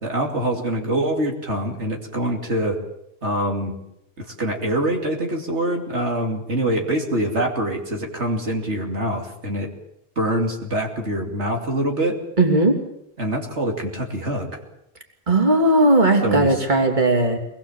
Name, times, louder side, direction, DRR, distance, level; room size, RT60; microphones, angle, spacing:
voice 1, 0.0-2.8 3.2-3.8 4.2-9.7 10.2-12.2 13.2-14.6 16.2-16.6, right 1 dB, 90° right, 1 dB, 3.2 m, -24 dB
voice 2, 12.4-12.7 15.3-17.4, right 2 dB, 45° right, 2 dB, 3.3 m, -17 dB
24.0 x 20.5 x 7.4 m, 0.81 s
omnidirectional pair, 1.1 m